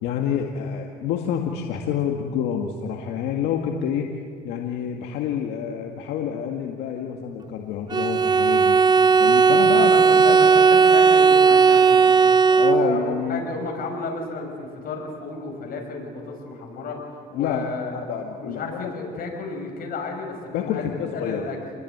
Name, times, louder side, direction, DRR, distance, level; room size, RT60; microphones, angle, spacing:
voice 1, 0.0-4.1 4.4-8.8 9.2-10.4 12.5-13.5 17.3-19.0 20.5-21.5, left 8 dB, 85° left, 2 dB, 1.9 m, -28 dB
Bowed string instrument, 7.9-13.2, right 5 dB, 25° right, 0.8 m, -16 dB
voice 2, 9.7-12.3 12.6-17.0 17.3-18.0 18.4-20.9 21.1-21.6, left 4 dB, 60° left, 2 dB, 6.6 m, -32 dB
28.5 x 21.0 x 9.4 m, 2.2 s
cardioid pair, 110°, 17 cm